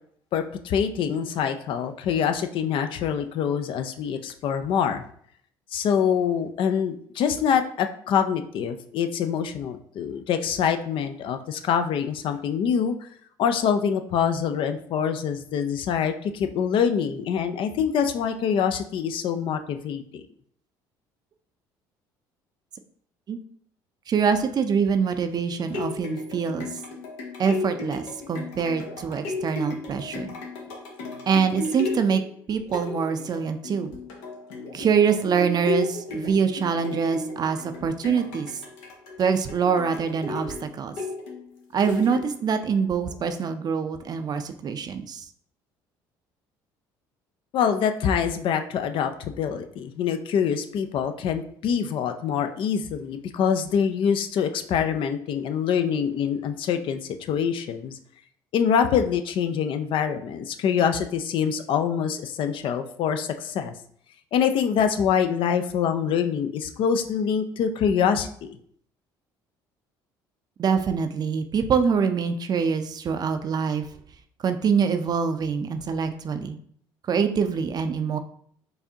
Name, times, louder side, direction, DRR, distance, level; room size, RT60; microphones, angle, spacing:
voice 1, 0.3-5.0 5.7-13.1 13.4-20.2 47.5-58.0 58.5-63.7 64.3-68.6, left 7 dB, 60° left, 8 dB, 0.4 m, -25 dB
voice 2, 24.1-26.8 27.4-30.4 31.3-32.2 32.5-33.9 34.7-38.6 39.2-40.9 41.7-45.2 70.6-73.9 74.4-76.6 77.1-78.2, right 6 dB, 40° right, 8 dB, 0.4 m, -24 dB
sound 1, 25.4-42.5 43.1-43.2, left 3 dB, 85° left, 0.8 m, -34 dB
4.7 x 2.6 x 2.8 m, 0.62 s
supercardioid pair, 75°, 10 cm